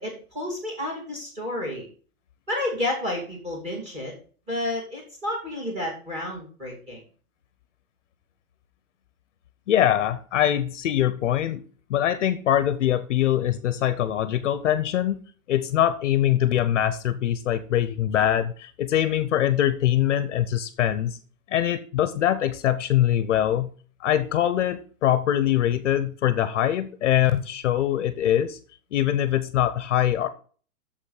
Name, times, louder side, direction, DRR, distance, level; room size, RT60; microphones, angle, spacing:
voice 1, 0.0-1.9 2.5-4.1 4.5-7.0, left 1 dB, 15° right, 0 dB, 2.7 m, -30 dB
voice 2, 9.7-11.6 11.9-15.2 15.5-21.2 21.5-23.7 24.0-28.6 28.9-30.3, left 11 dB, 55° left, 13 dB, 0.7 m, -23 dB
7.0 x 5.6 x 6.4 m, 0.41 s
supercardioid pair, 180°, 44 cm